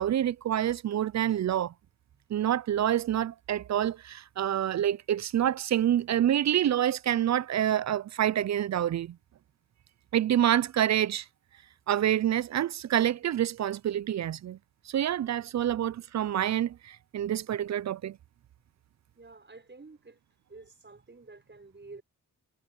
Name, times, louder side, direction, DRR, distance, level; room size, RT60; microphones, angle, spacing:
voice 1, 0.0-1.7 2.3-9.2 10.1-11.2 11.9-14.6 14.9-18.2, right 11 dB, 55° right, 0.4 m, -27 dB
voice 2, 19.2-20.2 20.5-22.0, right 3 dB, 35° right, 5.5 m, -50 dB
cardioid pair, 75°, 32 cm